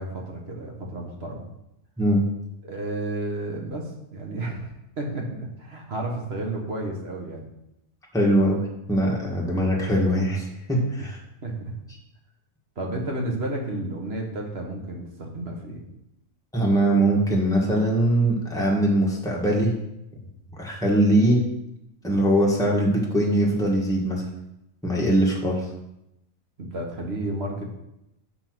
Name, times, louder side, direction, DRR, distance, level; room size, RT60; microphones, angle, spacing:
voice 1, 0.0-1.4 2.6-7.5 11.0-11.1 11.4-11.8 12.8-15.8 26.6-27.8, right 1 dB, 50° right, 1 dB, 1.6 m, -32 dB
voice 2, 8.1-11.2 16.5-19.7 20.5-21.4 22.0-24.3 24.8-25.6, right 1 dB, 5° left, -3 dB, 1.5 m, -21 dB
6.7 x 5.7 x 6.1 m, 0.85 s
omnidirectional pair, 1.4 m